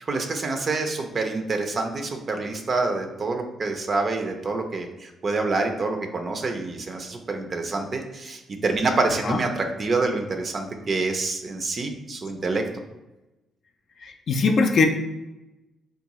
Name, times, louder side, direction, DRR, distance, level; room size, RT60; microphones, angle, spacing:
voice 1, 0.1-12.6, right 3 dB, 40° right, 4 dB, 0.4 m, -27 dB
voice 2, 14.0-14.9, left 4 dB, 55° left, 4 dB, 0.3 m, -21 dB
3.6 x 2.3 x 2.9 m, 1.0 s
cardioid pair, 90°, 0 cm